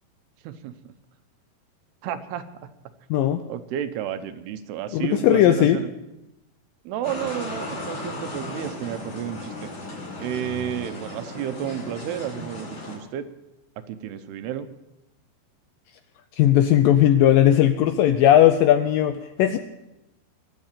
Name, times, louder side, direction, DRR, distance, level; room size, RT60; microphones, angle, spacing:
voice 1, 0.4-0.9 2.0-2.7 3.5-5.9 6.8-9.7 10.2-13.2 13.9-14.7, right 10 dB, 85° right, 10 dB, 2.9 m, -31 dB
voice 2, 4.9-5.8 16.4-19.6, left 11 dB, 80° left, 9 dB, 2.0 m, -17 dB
sound 1, 7.0-13.0, left 2 dB, 55° left, 6.7 m, -35 dB
23.0 x 7.7 x 7.4 m, 0.93 s
omnidirectional pair, 4.6 m